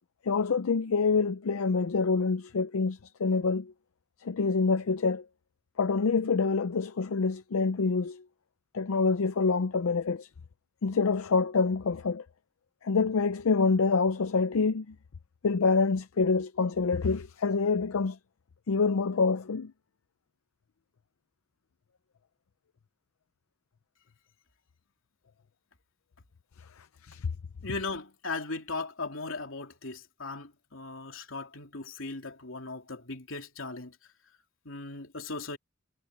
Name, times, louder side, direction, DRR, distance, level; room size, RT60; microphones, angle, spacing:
voice 1, 0.2-3.7 4.2-5.2 5.8-8.2 8.7-10.3 10.8-12.2 12.8-14.9 15.4-18.2 18.7-19.7 27.0-27.3, left 4 dB, 90° left, 0.5 m, -26 dB
voice 2, 27.6-34.0 34.6-35.6, left 3 dB, 70° left, 3.3 m, -38 dB
head